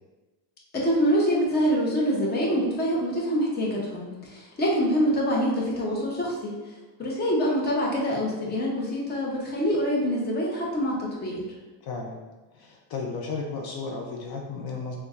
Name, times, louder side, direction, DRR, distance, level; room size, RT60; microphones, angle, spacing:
voice 1, 0.7-4.0 4.3-6.5 7.0-11.4, equal, 25° left, -3 dB, 0.7 m, -25 dB
voice 2, 11.8-12.2 12.5-15.0, left 4 dB, 60° left, 1 dB, 0.6 m, -34 dB
6.7 x 2.3 x 2.4 m, 1.2 s
cardioid pair, 170°, 42 cm